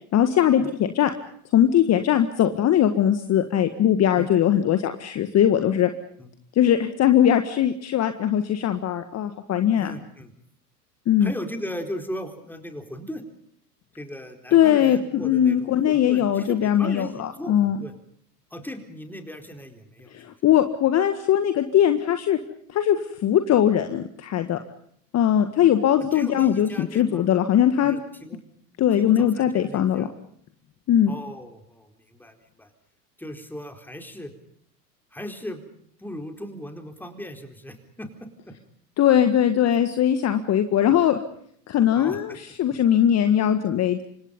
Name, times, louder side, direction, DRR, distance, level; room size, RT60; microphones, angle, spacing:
voice 1, 0.1-1.1 1.5-5.9 6.6-9.9 11.1-11.3 14.5-17.8 20.1-22.4 22.7-24.6 25.1-28.0 28.8-30.1 30.9-31.1 39.0-41.2 41.7-42.3 42.6-44.0, left 10 dB, 30° left, 9 dB, 1.8 m, -20 dB
voice 2, 9.8-10.3 11.2-13.2 13.9-17.9 18.5-20.3 26.0-27.3 27.8-28.4 29.0-30.1 31.1-32.7 33.2-34.3 35.1-35.6 36.0-38.5 40.9-41.0 41.9-42.4, left 1 dB, 5° left, 5 dB, 4.3 m, -37 dB
28.5 x 25.5 x 5.4 m, 0.66 s
hypercardioid pair, 90°, 49 cm